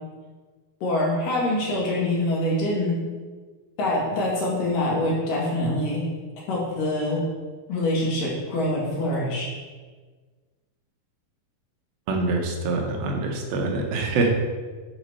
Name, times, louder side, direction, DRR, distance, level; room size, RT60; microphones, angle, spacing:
voice 1, 0.8-3.0 3.8-6.0 6.5-7.2 7.7-9.5, left 1 dB, 65° left, -4 dB, 3.2 m, -25 dB
voice 2, 12.1-14.3, right 3 dB, 80° right, 1 dB, 2.7 m, -25 dB
10.0 x 4.2 x 4.4 m, 1.4 s
omnidirectional pair, 4.3 m